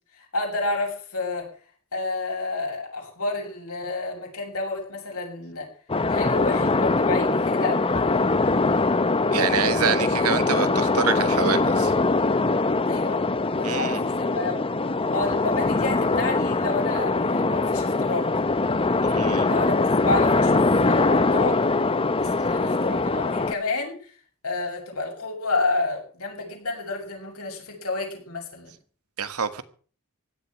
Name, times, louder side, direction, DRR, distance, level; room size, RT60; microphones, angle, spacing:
voice 1, 0.2-1.5 1.9-5.7 6.1-8.2 12.9-13.2 13.5-14.6 15.1-18.3 19.4-21.6 22.2-24.1 24.4-28.7, left 3 dB, 75° left, 7.1 m, -30 dB
sound 1, 5.9-23.5, left 3 dB, 25° left, 0.8 m, -22 dB
voice 2, 9.3-11.9 13.6-14.0 19.0-19.5 29.2-29.6, right 6 dB, 75° right, 1.5 m, -26 dB
16.5 x 11.5 x 6.2 m
head